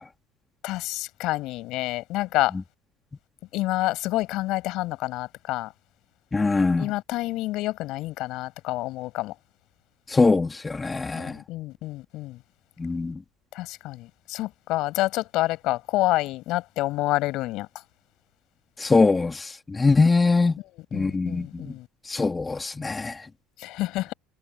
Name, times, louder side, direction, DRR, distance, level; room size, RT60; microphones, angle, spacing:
voice 1, 0.6-2.5 3.5-5.7 6.8-9.3 11.1-12.4 13.5-17.7 20.9-21.9 23.6-24.1, left 18 dB, 65° left, 7.4 m, -28 dB
voice 2, 6.3-6.9 10.1-11.3 12.8-13.2 18.8-20.6 20.9-21.7 22.1-23.2, left 3 dB, 20° left, 3.7 m, -22 dB
hypercardioid pair, 75°, 0 cm